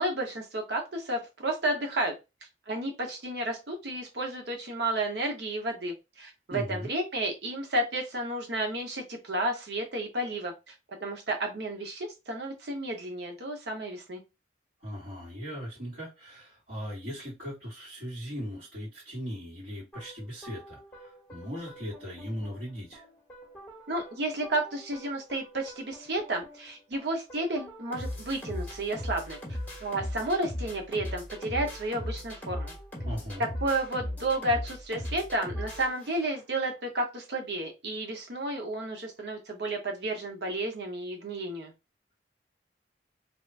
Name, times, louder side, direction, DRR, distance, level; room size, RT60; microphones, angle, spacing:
voice 1, 0.0-2.1 2.7-10.7 11.0-14.2 23.9-29.4 29.8-32.7 33.6-41.7, right 1 dB, 70° right, 0.8 m, -32 dB
voice 2, 6.5-6.9 14.8-23.0 33.0-33.5, equal, 50° right, 1.8 m, -38 dB
sound 1, 19.9-36.6, left 1 dB, 10° left, 1.3 m, -40 dB
2.8 x 2.4 x 3.3 m
head